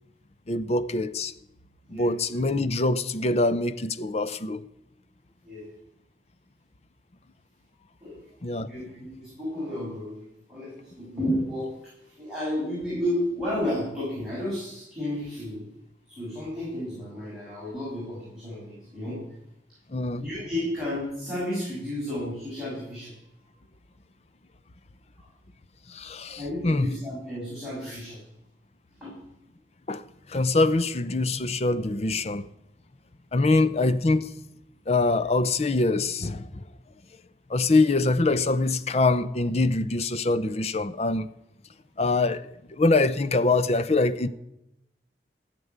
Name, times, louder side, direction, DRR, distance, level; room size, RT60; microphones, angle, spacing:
voice 1, 0.5-1.3 1.9-4.6 8.4-8.7 19.9-20.2 25.9-26.9 29.9-30.0 30.3-32.4 33.3-34.3 34.9-36.5 37.5-41.3 42.0-44.3, left 2 dB, 35° left, 0.6 m, -24 dB
voice 2, 8.6-15.6 16.1-19.2 20.2-23.1 25.2-25.3 26.4-28.2 29.0-29.1, left 1 dB, 5° right, 6.1 m, -32 dB
14.5 x 6.8 x 9.4 m
head